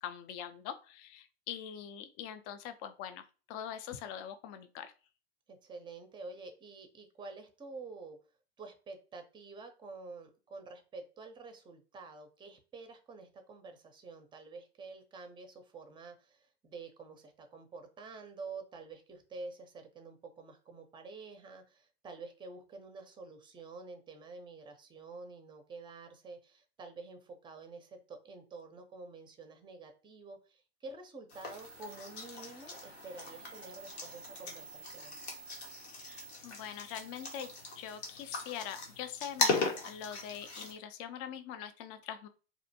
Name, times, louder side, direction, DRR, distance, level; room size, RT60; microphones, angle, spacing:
voice 1, 0.0-4.9 35.9-37.5 37.8-42.3, left 9 dB, 45° left, 10 dB, 0.4 m, -43 dB
voice 2, 5.5-8.2 8.6-35.2, right 3 dB, 15° right, 7 dB, 0.5 m, -49 dB
sound 1, 31.3-40.7, left 3 dB, 85° left, 0.9 m, -38 dB
2.5 x 2.1 x 2.7 m, 0.34 s
hypercardioid pair, 100°, 32 cm